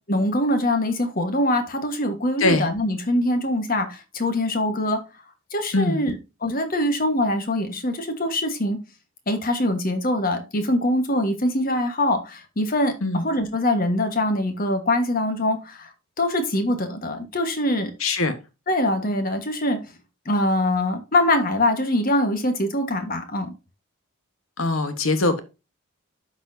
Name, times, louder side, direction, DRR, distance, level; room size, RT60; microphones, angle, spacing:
voice 1, 0.1-5.0 5.5-8.8 9.3-15.9 16.2-17.9 18.7-19.8 20.2-23.5, left 1 dB, 45° left, 1.4 m, -23 dB
voice 2, 18.0-18.3 24.6-25.4, left 2 dB, 80° left, 1.2 m, -22 dB
12.5 x 4.4 x 2.7 m
head